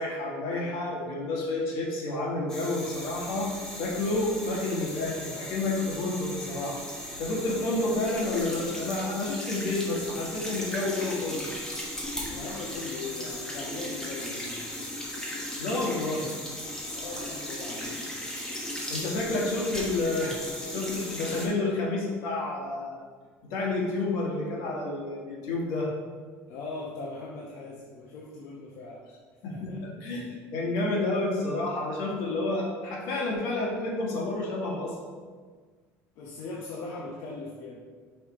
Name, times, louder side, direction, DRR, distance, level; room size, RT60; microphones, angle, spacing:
voice 1, 0.0-6.8 7.2-11.4 15.6-16.3 18.9-20.4 20.7-23.0 23.5-25.9 29.4-34.9, left 2 dB, 85° left, -2 dB, 1.8 m, -30 dB
sound 1, 2.5-21.5, left 1 dB, 10° left, 1.2 m, -37 dB
voice 2, 12.3-14.6 16.9-18.0 26.5-29.0 29.5-29.8 36.2-37.8, left 3 dB, 65° left, -4 dB, 1.0 m, -39 dB
5.5 x 5.0 x 4.2 m, 1.5 s
cardioid pair, 155°, 6 cm